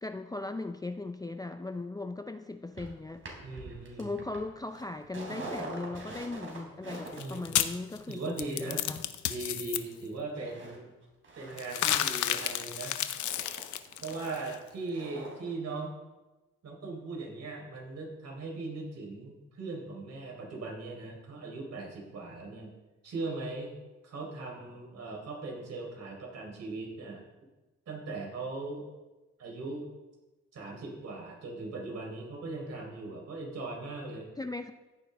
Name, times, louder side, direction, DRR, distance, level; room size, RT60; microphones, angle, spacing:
voice 1, 0.0-3.2 4.0-9.0 34.4-34.7, left 2 dB, 10° left, 7 dB, 0.5 m, -38 dB
sound 1, 2.8-10.0 10.3-10.8 11.0-15.5 15.8-15.9, right 2 dB, 45° right, 3.7 m, -45 dB
voice 2, 3.4-4.2 7.1-7.5 8.1-8.8 9.2-10.9 11.3-13.0 14.0-15.9 16.6-22.7 23.0-23.7 24.0-27.2 27.9-28.9 29.4-29.9 30.5-34.3, right 3 dB, 60° right, -1 dB, 4.2 m, -39 dB
sound 2, 6.9-9.8 11.6-14.6, left 11 dB, 75° left, 0.8 m, -31 dB
14.5 x 9.1 x 3.5 m, 1.1 s
cardioid pair, 90°, 30 cm